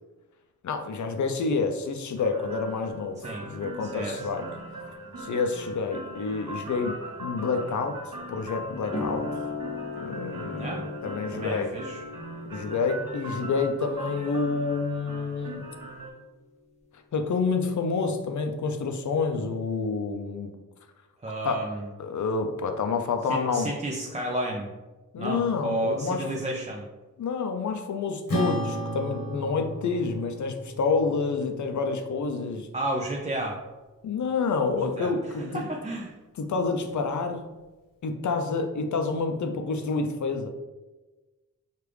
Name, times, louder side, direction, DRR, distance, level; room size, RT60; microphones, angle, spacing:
voice 1, 0.6-4.5 5.2-9.3 10.0-11.8 12.5-15.7 17.1-20.5 21.4-21.6 22.0-23.7 25.1-26.2 27.2-32.7 34.0-35.7 36.4-37.4 38.0-40.5, left 4 dB, 65° left, 6 dB, 0.6 m, -28 dB
sound 1, 2.2-16.1, right 1 dB, 75° right, 1.2 m, -40 dB
voice 2, 3.8-4.2 10.6-10.8 11.3-12.0 21.2-21.9 23.3-24.7 25.2-26.9 32.7-33.6 35.0-36.1, right 1 dB, 20° right, -1 dB, 0.5 m, -32 dB
sound 2, 8.9-16.1, left 3 dB, 20° left, 0.9 m, -38 dB
Acoustic guitar / Strum, 28.3-33.0, equal, 90° left, 1.2 m, -34 dB
4.7 x 2.5 x 3.3 m, 1.2 s
cardioid pair, 65°, 32 cm